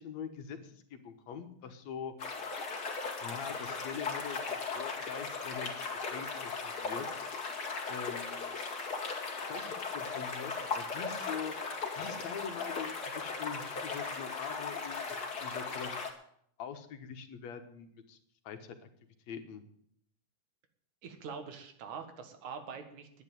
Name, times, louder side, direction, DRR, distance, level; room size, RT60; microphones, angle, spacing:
voice 1, 0.0-2.1 3.2-7.2 7.9-8.5 9.4-11.6 11.9-16.0 16.6-18.2 18.4-18.8 19.3-19.6, left 7 dB, 70° left, 7 dB, 2.5 m, -43 dB
sound 1, 2.2-16.1, left 4 dB, 35° left, 2.4 m, -37 dB
voice 2, 21.0-23.2, right 6 dB, 85° right, 7 dB, 3.1 m, -44 dB
10.5 x 9.7 x 9.1 m, 0.67 s
omnidirectional pair, 3.3 m